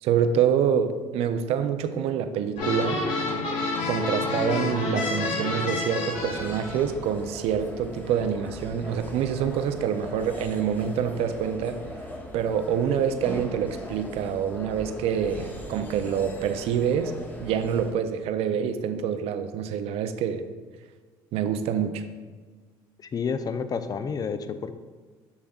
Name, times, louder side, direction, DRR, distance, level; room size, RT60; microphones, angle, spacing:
voice 1, 0.0-3.0 3.9-11.8 12.3-17.1 17.4-20.4 21.3-22.0, right 8 dB, 70° right, 9 dB, 0.5 m, -26 dB
sound 1, 2.6-6.8, left 2 dB, 65° left, 1.7 m, -28 dB
sound 2, 6.1-17.9, equal, 15° left, 0.9 m, -40 dB
voice 2, 23.1-24.7, left 5 dB, 35° left, 10 dB, 0.5 m, -29 dB
7.0 x 6.5 x 2.4 m, 1.4 s
supercardioid pair, 80°, 11 cm